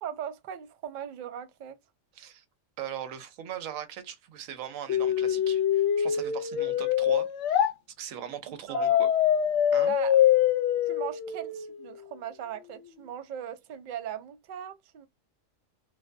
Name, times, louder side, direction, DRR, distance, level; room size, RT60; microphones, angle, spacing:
voice 1, 0.0-1.8 8.7-9.1 9.9-10.2 10.9-15.1, right 9 dB, 65° right, 0.4 m, -39 dB
voice 2, 2.1-2.4 2.8-7.7 8.0-9.1 9.7-9.9, right 10 dB, 85° right, 1.0 m, -40 dB
sound 1, 4.9-7.7 8.7-11.7, left 10 dB, 70° left, 0.9 m, -24 dB
2.5 x 2.1 x 2.5 m
omnidirectional pair, 1.4 m